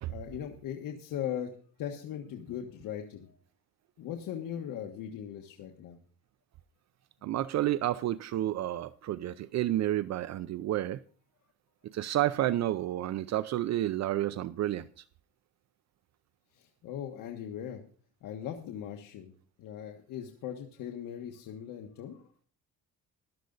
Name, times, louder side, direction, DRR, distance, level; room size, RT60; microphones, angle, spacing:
voice 1, 0.1-3.4 4.0-6.0 16.5-17.8 18.2-19.3 19.6-22.3, left 9 dB, 80° left, 1.5 m, -39 dB
voice 2, 7.2-11.0 11.9-15.0, right 13 dB, 55° right, 0.6 m, -30 dB
14.5 x 11.5 x 4.0 m
cardioid pair, 135°, 32 cm